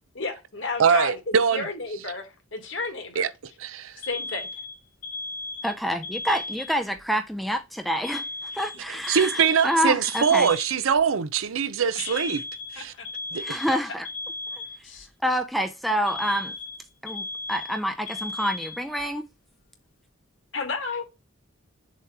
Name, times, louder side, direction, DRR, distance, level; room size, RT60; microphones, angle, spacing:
voice 1, 0.1-3.3 4.0-4.5 8.9-9.0 11.9-12.4 12.7-13.1 13.7-13.8 14.8-15.1 20.5-21.0, left 4 dB, 60° left, 1.7 m, -33 dB
voice 2, 0.8-1.6 3.2-3.3 3.6-3.9 9.1-12.4 12.7-12.9 13.3-13.6, right 6 dB, 75° right, 0.5 m, -22 dB
Alarm, 4.0-7.0 8.0-11.0 12.0-15.0 16.1-19.0, left 2 dB, 75° left, 2.6 m, -36 dB
voice 3, 5.6-8.2 8.5-10.5 13.4-14.1 15.2-16.5 17.0-19.3, equal, ahead, 0.4 m, -27 dB
6.8 x 3.0 x 4.6 m
head